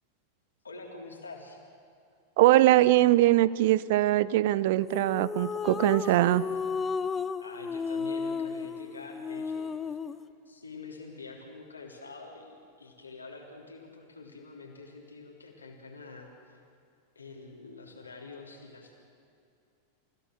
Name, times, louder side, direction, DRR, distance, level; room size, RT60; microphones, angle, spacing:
voice 1, 0.6-1.6 6.0-6.6 7.4-10.0 10.5-16.6 17.2-19.0, left 3 dB, 80° left, 0 dB, 3.4 m, -46 dB
voice 2, 2.4-6.4, right 15 dB, 50° right, 19 dB, 0.5 m, -22 dB
sound 1, 4.9-10.3, left 5 dB, 20° left, 0.7 m, -33 dB
29.0 x 16.0 x 6.4 m, 2.4 s
figure-of-eight pair, 90°, 0 cm